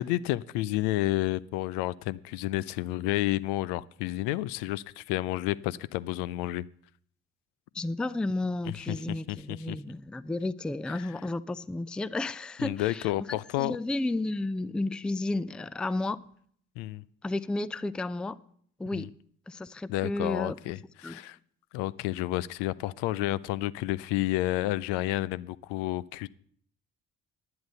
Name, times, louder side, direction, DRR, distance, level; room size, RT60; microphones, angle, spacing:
voice 1, 0.0-6.6 8.7-9.8 10.9-11.1 12.6-13.8 16.8-17.0 18.9-19.1 19.9-21.4 21.7-26.3, left 16 dB, 70° left, 0.5 m, -30 dB
voice 2, 7.7-16.2 17.2-18.4 18.8-19.1 19.5-20.7 21.0-21.2, left 2 dB, ahead, 0.4 m, -32 dB
10.5 x 9.8 x 6.7 m
hypercardioid pair, 45°, 43 cm